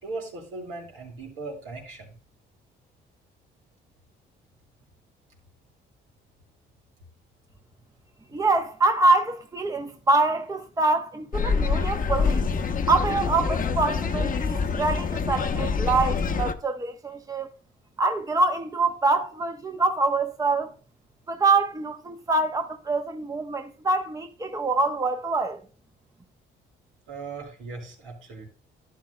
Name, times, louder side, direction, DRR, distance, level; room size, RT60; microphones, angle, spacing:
voice 1, 0.0-2.1 27.1-28.5, right 3 dB, 90° right, 4.8 m, -38 dB
voice 2, 8.3-12.5 12.9-17.5 18.0-20.7 21.3-25.6, right 3 dB, 15° right, 0.9 m, -25 dB
sound 1, 11.3-16.5, left 5 dB, 45° left, 0.9 m, -26 dB
12.5 x 11.0 x 2.2 m
cardioid pair, 90°, 20 cm